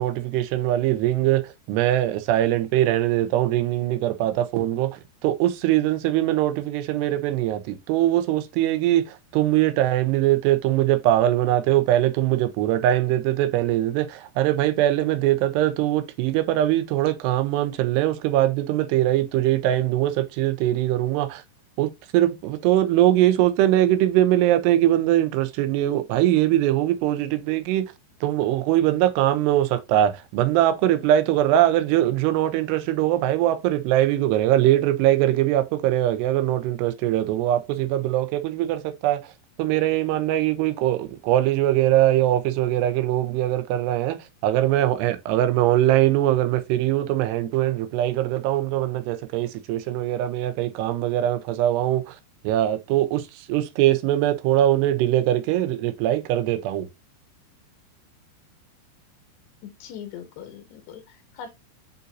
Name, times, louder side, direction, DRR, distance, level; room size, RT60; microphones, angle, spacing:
voice 1, 0.0-21.4 21.8-27.9 28.2-39.3 39.6-52.2 52.4-56.9, right 13 dB, 85° right, 2.8 m, -22 dB
voice 2, 59.6-61.5, left 8 dB, 80° left, 3.1 m, -41 dB
9.1 x 4.1 x 2.6 m
omnidirectional pair, 4.8 m